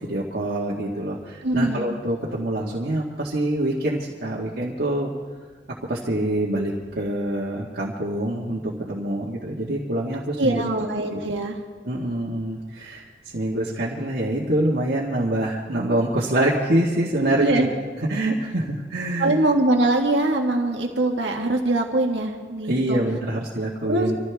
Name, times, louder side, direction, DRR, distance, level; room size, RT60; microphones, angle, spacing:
voice 1, 0.0-5.1 5.9-10.6 11.1-11.2 11.8-17.7 18.1-19.5 22.7-24.1, right 1 dB, 60° right, -5 dB, 1.8 m, -25 dB
voice 2, 1.4-2.0 10.4-11.6 17.2-17.7 19.2-23.0 23.9-24.1, right 2 dB, 75° right, 1 dB, 1.7 m, -22 dB
25.5 x 15.0 x 3.5 m, 1.5 s
head